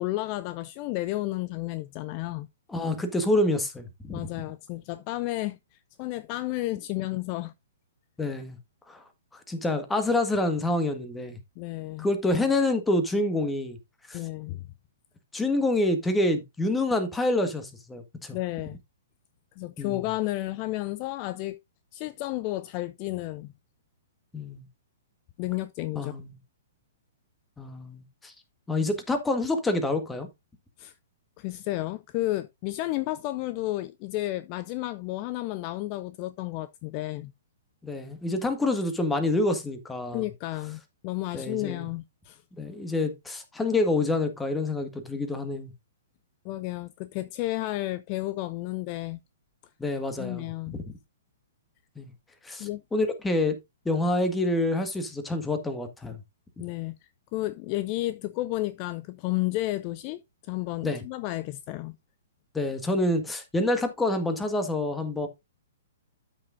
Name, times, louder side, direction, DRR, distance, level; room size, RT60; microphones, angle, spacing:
voice 1, 0.0-2.5 4.1-7.5 11.6-12.1 14.1-14.6 18.3-18.8 19.6-21.6 21.9-23.5 25.4-26.2 30.8-30.9 31.4-37.3 40.1-42.4 46.4-49.2 50.2-50.8 52.6-52.8 56.6-62.0, left 17 dB, 35° left, 0.4 m, -32 dB
voice 2, 2.7-4.2 8.2-8.6 8.9-9.0 9.5-11.4 12.0-13.8 14.1-14.2 15.3-18.4 19.8-20.0 24.3-24.7 25.9-26.3 27.6-28.3 28.7-30.3 37.8-40.3 41.3-41.9 42.6-45.7 49.8-50.5 52.0-52.1 52.4-53.6 53.8-56.2 60.8-61.0 62.5-65.3, left 2 dB, 10° left, 1.6 m, -27 dB
12.5 x 6.2 x 2.6 m
figure-of-eight pair, 115°, 0 cm